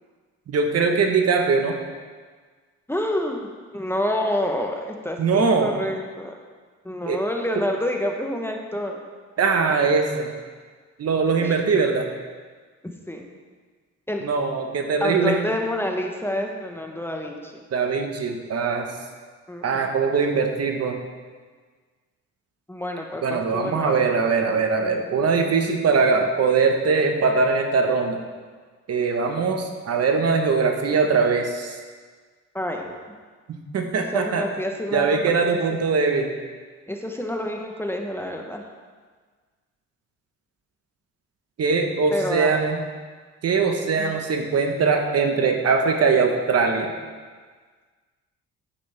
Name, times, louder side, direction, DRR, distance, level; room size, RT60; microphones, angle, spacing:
voice 1, 0.5-1.7 5.2-5.7 7.0-7.2 9.4-10.3 11.0-12.1 14.2-15.3 17.7-18.9 19.6-21.0 23.2-28.2 28.9-31.8 33.7-34.4 34.9-36.3 41.6-42.8 43.4-46.9, right 4 dB, 55° right, 4 dB, 1.2 m, -21 dB
voice 2, 2.9-3.4 3.7-6.4 6.8-9.0 11.4-11.5 12.8-13.3 14.1-14.3 15.0-17.6 19.5-19.9 22.7-24.0 32.5-33.0 34.1-35.3 35.7-35.8 36.9-38.6 42.1-42.6 44.0-44.1, left 1 dB, 10° left, 2 dB, 1.0 m, -28 dB
9.8 x 8.5 x 3.4 m, 1.5 s
cardioid pair, 90°, 30 cm